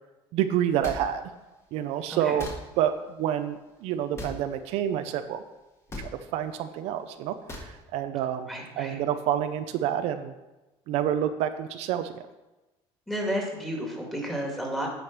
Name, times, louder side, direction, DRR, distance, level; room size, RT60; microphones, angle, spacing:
voice 1, 0.3-1.2 1.7-2.5 2.8-5.4 6.0-7.3 7.9-8.5 8.8-10.3 10.9-12.1, right 10 dB, 75° right, 9 dB, 0.6 m, -28 dB
sound 1, 0.8-1.0 2.4-2.6 4.1-4.4 5.9-6.1 7.5-7.7, left 1 dB, 25° left, 1.6 m, -37 dB
voice 2, 8.5-9.0 13.1-14.9, equal, ahead, -1 dB, 2.0 m, -32 dB
9.0 x 5.0 x 5.9 m, 1.1 s
cardioid pair, 130°, 11 cm